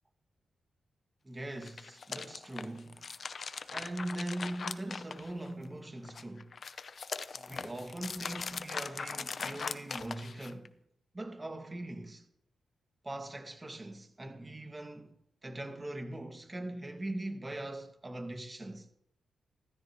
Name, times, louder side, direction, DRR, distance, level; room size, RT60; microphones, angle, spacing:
voice 1, 1.2-3.1 3.7-6.5 7.3-10.7 11.1-12.3 13.0-15.2 15.4-18.9, right 1 dB, 25° right, 2.1 m, -41 dB
sound 1, 1.5-5.7 6.0-10.7, left 5 dB, 55° left, 0.8 m, -40 dB
16.0 x 14.5 x 3.2 m
cardioid pair, 65°, 0 cm